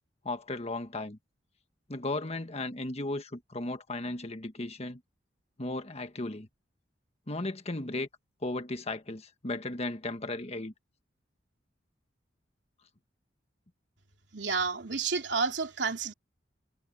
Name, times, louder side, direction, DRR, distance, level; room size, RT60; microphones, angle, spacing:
voice 1, 0.2-1.2 1.9-5.0 5.6-6.5 7.3-8.1 8.4-10.7, left 2 dB, 35° left, 1.5 m, -35 dB
voice 2, 14.3-16.1, right 4 dB, 75° right, 3.0 m, -30 dB
head